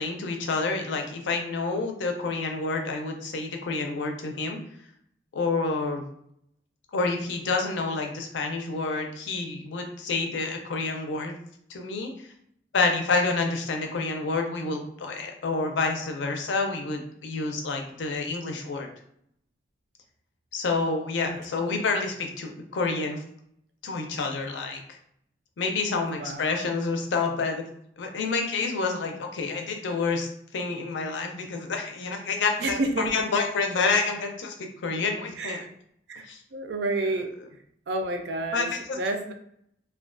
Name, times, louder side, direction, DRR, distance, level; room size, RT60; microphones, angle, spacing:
voice 1, 0.0-4.6 5.3-6.0 6.9-11.3 11.7-12.3 12.7-18.9 20.5-23.2 23.8-25.0 25.6-27.6 28.0-34.5 34.8-35.6 36.2-36.4 38.5-39.0, left 4 dB, 90° left, 3 dB, 0.5 m, -28 dB
voice 2, 26.1-26.6 32.6-33.3 35.4-35.7 36.1-36.2 36.5-37.3 37.9-38.7 38.9-39.3, right 2 dB, 65° right, 5 dB, 0.4 m, -29 dB
2.3 x 2.2 x 2.4 m, 0.70 s
head